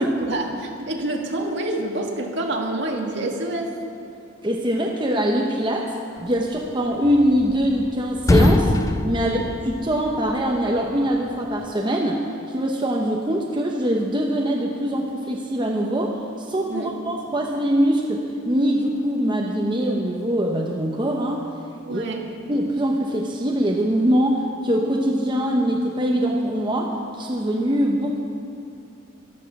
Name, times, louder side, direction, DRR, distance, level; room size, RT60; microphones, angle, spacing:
voice 1, 0.2-3.8 9.2-9.5 16.7-16.9 21.8-22.2, right 2 dB, 60° right, 0 dB, 1.9 m, -27 dB
voice 2, 4.4-5.9 6.2-8.7 9.0-9.4 9.7-21.5 21.9-22.0 22.5-28.2, equal, 25° right, -1 dB, 0.9 m, -23 dB
sound 1, 7.0-7.9 8.2-10.3, left 1 dB, 15° left, 0.3 m, -21 dB
13.5 x 12.5 x 6.0 m, 2.6 s
head